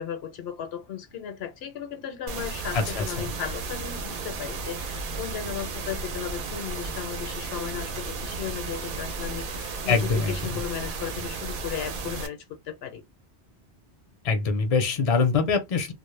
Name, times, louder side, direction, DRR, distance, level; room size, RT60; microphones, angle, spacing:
voice 1, 0.0-13.0, left 9 dB, 75° left, 0.8 m, -35 dB
sound 1, 2.3-12.3, right 4 dB, 60° right, 0.7 m, -34 dB
voice 2, 2.7-3.3 9.9-10.3 14.2-15.9, left 4 dB, 45° left, 0.5 m, -24 dB
2.1 x 2.0 x 3.1 m
omnidirectional pair, 1.1 m